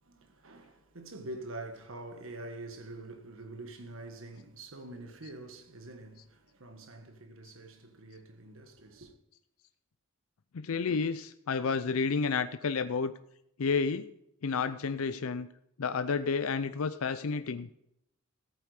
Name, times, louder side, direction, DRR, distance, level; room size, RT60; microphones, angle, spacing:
voice 1, 0.0-9.1, right 2 dB, 70° right, 1.5 m, -45 dB
voice 2, 10.5-13.1 13.6-14.1 14.4-15.5 15.8-17.7, left 5 dB, 80° left, 0.5 m, -30 dB
14.0 x 8.9 x 4.9 m
head